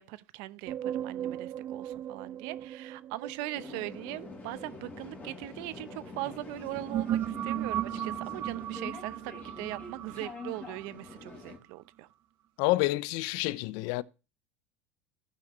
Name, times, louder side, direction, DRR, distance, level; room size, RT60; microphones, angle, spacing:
voice 1, 0.0-12.1, right 17 dB, 65° right, 0.8 m, -40 dB
sound 1, 0.7-5.9 6.5-11.5, right 12 dB, 35° right, 0.4 m, -37 dB
sound 2, 3.6-11.6, left 3 dB, 25° left, 3.3 m, -45 dB
voice 2, 12.6-14.0, left 19 dB, 65° left, 0.5 m, -28 dB
15.5 x 5.8 x 3.1 m
supercardioid pair, 105°, 8 cm